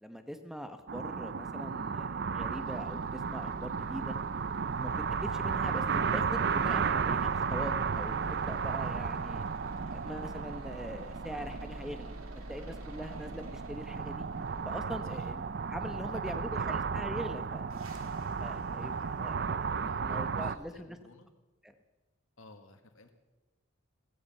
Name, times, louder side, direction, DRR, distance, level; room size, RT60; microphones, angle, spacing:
voice 1, 0.0-4.2 4.8-4.9 5.2-5.8 6.1-9.4 9.9-12.2 12.5-14.3 14.7-17.7 18.4-19.7 20.0-21.0 21.6-21.7, equal, ahead, 8 dB, 1.0 m, -42 dB
sound 1, 0.9-20.6, right 5 dB, 50° right, 0.5 m, -34 dB
sound 2, 2.5-20.7, right 1 dB, 90° right, 2.3 m, -48 dB
voice 2, 16.1-16.6 18.6-19.0 19.8-21.3 22.4-23.2, left 3 dB, 75° left, 6 dB, 1.8 m, -56 dB
16.0 x 15.5 x 5.6 m, 1.1 s
head